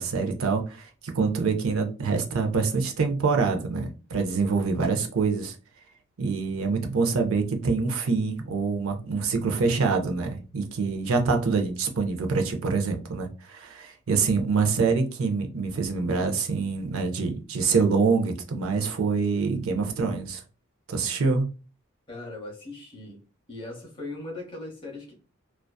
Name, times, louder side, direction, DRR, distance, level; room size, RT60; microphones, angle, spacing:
voice 1, 0.0-5.5 6.2-20.4 20.9-21.5, right 4 dB, 80° right, 0.5 m, -25 dB
voice 2, 22.1-23.2 23.5-25.1, left 2 dB, 25° left, 0.7 m, -39 dB
2.5 x 2.3 x 2.2 m
head